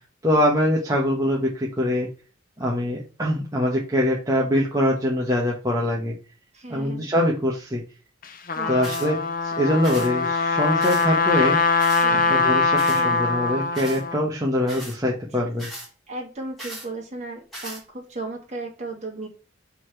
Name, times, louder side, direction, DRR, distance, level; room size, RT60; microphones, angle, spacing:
voice 1, 0.2-2.1 2.6-6.1 6.7-7.8 8.7-9.2 9.4-11.6 12.3-15.7, left 1 dB, 20° right, -4 dB, 1.3 m, -23 dB
voice 2, 6.5-7.1 8.5-8.8 12.0-12.5 12.9-13.2 15.3-15.5 16.1-19.3, right 2 dB, 35° right, 0 dB, 2.3 m, -35 dB
Trumpet, 8.2-14.2, left 4 dB, 45° left, 0.9 m, -22 dB
sound 1, 8.8-9.1 9.8-10.1 10.8-11.1 11.8-12.1 12.8-13.0 13.8-14.0 14.7-15.0 15.6-15.9 16.6-16.9 17.5-17.8, right 1 dB, ahead, 2.7 m, -37 dB
6.0 x 3.9 x 6.1 m, 0.35 s
head